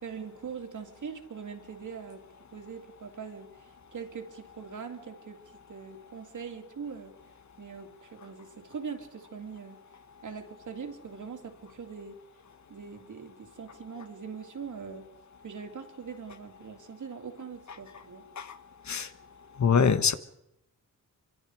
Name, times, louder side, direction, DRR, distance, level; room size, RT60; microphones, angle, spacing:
voice 1, 0.0-2.2 2.5-5.4 5.7-7.1 7.6-9.8 10.2-12.2 12.7-15.1 15.4-18.2, right 6 dB, 60° right, 5 dB, 2.9 m, -42 dB
voice 2, 19.6-20.1, left 6 dB, 55° left, 11 dB, 1.4 m, -23 dB
26.0 x 24.5 x 4.9 m, 0.81 s
wide cardioid pair, 105°, 33 cm